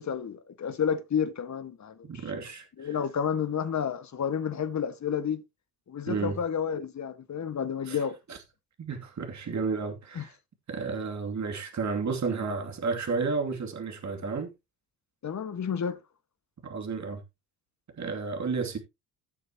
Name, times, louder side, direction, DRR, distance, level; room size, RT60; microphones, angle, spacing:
voice 1, 0.0-2.4 2.8-5.4 5.9-8.2 10.1-10.2 15.2-16.0, left 7 dB, 35° left, 1.7 m, -31 dB
voice 2, 2.1-2.9 6.1-6.4 7.9-8.0 8.3-8.4 8.8-10.4 10.7-14.5 16.6-17.2 18.0-18.8, right 4 dB, 35° right, 2.7 m, -32 dB
16.0 x 6.6 x 2.9 m
hypercardioid pair, 60°, 46 cm